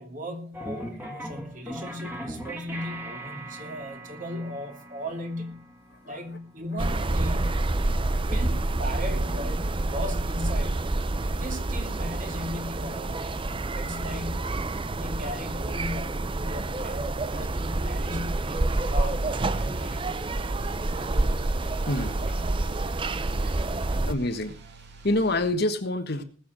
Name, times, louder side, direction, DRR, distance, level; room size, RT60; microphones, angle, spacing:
voice 1, 0.0-5.6 6.0-7.6 8.3-10.8 11.3-13.4 13.7-14.5 14.9-19.2 19.5-20.3 22.2-22.6 23.4-23.6 23.9-24.0, left 1 dB, 40° right, 4 dB, 2.9 m, -37 dB
sound 1, 0.5-7.2, right 1 dB, 10° right, 2.4 m, -40 dB
sound 2, 6.8-24.1, right 2 dB, 25° right, 0.6 m, -28 dB
sound 3, 18.7-25.5, right 2 dB, 60° right, 2.6 m, -46 dB
voice 2, 21.9-22.2 24.1-24.5 25.0-26.2, left 1 dB, 55° left, 7 dB, 1.4 m, -27 dB
19.5 x 7.4 x 6.2 m, 0.41 s
head